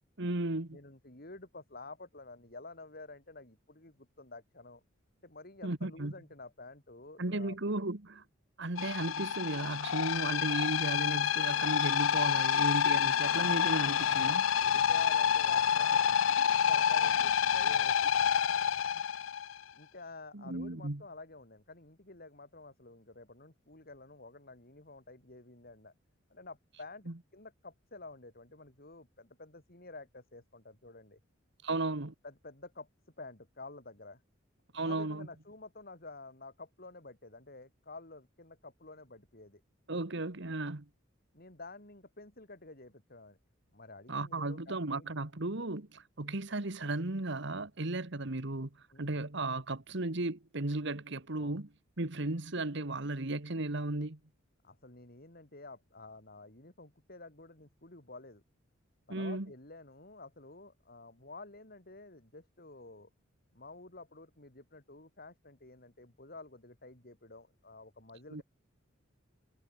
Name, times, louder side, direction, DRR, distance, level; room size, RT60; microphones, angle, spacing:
voice 1, 0.2-0.8 5.6-6.1 7.2-8.2 8.6-14.5 20.3-21.0 27.1-27.2 31.6-32.1 34.7-35.3 39.9-40.9 44.1-48.7 49.0-51.7 52.0-54.2 59.1-59.5 68.3-68.4, right 2 dB, 60° right, 1.7 m, -35 dB
voice 2, 0.7-4.8 5.2-7.6 14.6-18.4 18.9-19.0 19.7-25.9 26.3-31.2 32.2-32.9 33.2-34.2 34.8-39.6 41.3-43.4 43.7-45.1 48.9-49.2 51.4-51.6 54.6-58.4 59.1-63.1 63.5-68.4, left 3 dB, 50° left, 4.8 m, -50 dB
sound 1, 8.8-19.6, left 8 dB, 80° left, 0.5 m, -28 dB
head